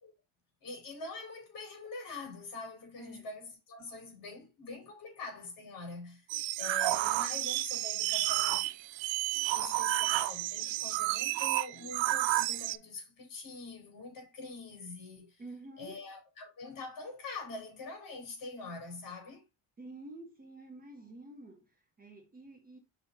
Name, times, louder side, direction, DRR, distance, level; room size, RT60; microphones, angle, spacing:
voice 1, 0.6-6.3 6.6-8.6 9.5-15.4 15.8-19.4, left 3 dB, 45° left, 3.9 m, -44 dB
voice 2, 3.0-3.3 15.4-16.0 19.8-22.8, right 2 dB, 20° right, 1.3 m, -49 dB
sound 1, 6.3-12.8, right 17 dB, 80° right, 0.6 m, -31 dB
5.4 x 4.1 x 4.4 m
cardioid pair, 160°, 45 cm